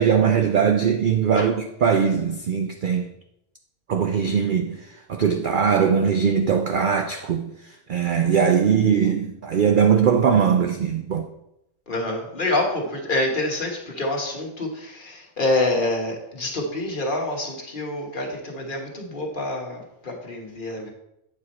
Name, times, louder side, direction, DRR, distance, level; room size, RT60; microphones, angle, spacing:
voice 1, 0.0-3.1 3.9-4.8 5.1-7.5 7.9-11.3, right 7 dB, 75° right, 0.4 m, -20 dB
voice 2, 11.9-20.9, left 2 dB, 40° left, 1.3 m, -27 dB
8.5 x 4.8 x 4.2 m
omnidirectional pair, 1.5 m